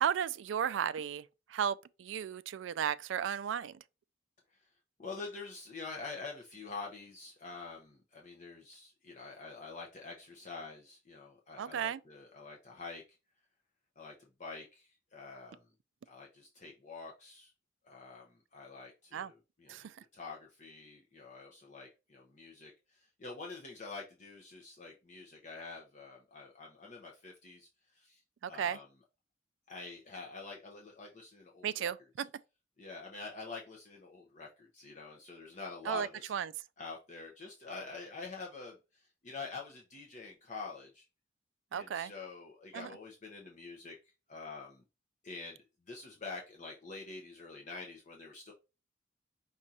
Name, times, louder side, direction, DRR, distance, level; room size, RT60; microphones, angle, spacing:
voice 1, 0.0-3.8 11.6-12.0 19.1-19.3 19.7-20.0 28.4-28.8 31.6-32.3 35.9-36.5 41.7-42.1 42.7-42.9, right 8 dB, 80° right, 0.3 m, -34 dB
voice 2, 5.0-13.2 14.0-15.6 16.0-17.5 17.8-28.9 29.7-31.9 32.2-32.3 32.8-36.3 36.8-41.1 41.7-44.8 45.2-48.5, left 4 dB, 40° left, 0.7 m, -47 dB
5.3 x 2.4 x 4.1 m
head